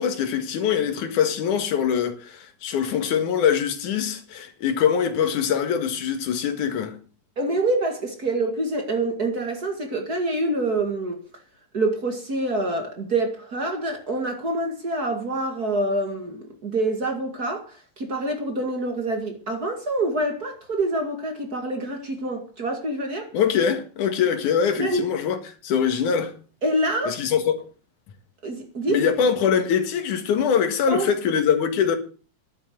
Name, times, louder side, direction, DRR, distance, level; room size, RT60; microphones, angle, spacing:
voice 1, 0.0-7.0 23.3-25.4 25.6-26.3 27.1-27.6 28.9-32.0, left 7 dB, 80° left, 3.1 m, -23 dB
voice 2, 7.4-11.2 11.7-23.3 24.8-25.1 26.6-27.2 28.4-29.0 30.9-31.1, right 2 dB, 35° right, 2.2 m, -26 dB
11.0 x 8.9 x 7.7 m
omnidirectional pair, 3.5 m